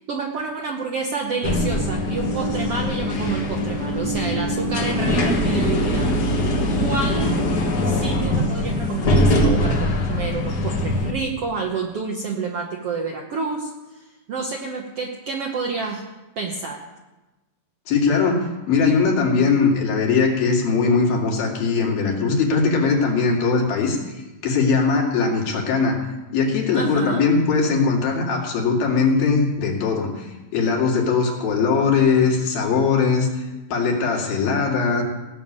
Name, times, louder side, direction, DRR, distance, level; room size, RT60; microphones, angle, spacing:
voice 1, 0.1-6.5 6.8-16.0 16.4-16.9 26.7-27.2, right 4 dB, 70° right, 2 dB, 1.4 m, -29 dB
sound 1, 1.4-11.1, left 1 dB, 60° left, 1.0 m, -22 dB
voice 2, 17.9-24.1 24.4-26.0 26.3-33.5 33.7-35.0, left 4 dB, 85° left, -1 dB, 4.2 m, -20 dB
17.0 x 7.1 x 8.7 m, 1.1 s
omnidirectional pair, 4.1 m